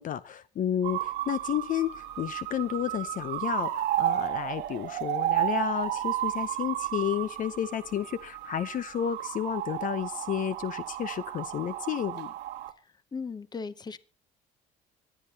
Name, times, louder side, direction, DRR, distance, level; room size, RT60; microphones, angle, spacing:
voice 1, 0.0-12.3, left 10 dB, 50° left, 0.7 m, -31 dB
sound 1, 0.8-12.7, right 13 dB, 90° right, 1.3 m, -32 dB
voice 2, 13.1-14.0, left 5 dB, 25° left, 0.9 m, -37 dB
25.5 x 10.0 x 2.8 m
cardioid pair, 110°, 17 cm